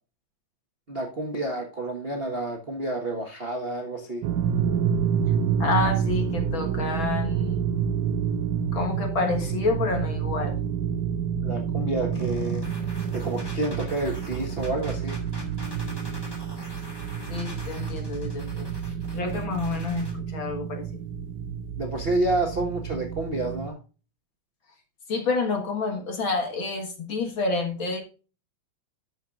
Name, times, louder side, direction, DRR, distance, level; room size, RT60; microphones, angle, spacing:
voice 1, 0.9-4.2 11.4-12.6 13.1-15.2 21.8-23.8, right 2 dB, 50° right, 1 dB, 0.7 m, -29 dB
sound 1, 4.2-23.7, right 7 dB, 90° right, 2.1 m, -29 dB
voice 2, 5.6-7.7 8.7-10.6 17.3-18.7 19.1-20.8 25.1-28.0, left 3 dB, 50° left, 3 dB, 1.9 m, -28 dB
sound 2, 12.1-20.1, equal, 10° left, 2.3 m, -42 dB
12.5 x 7.5 x 2.5 m, 0.35 s
omnidirectional pair, 3.5 m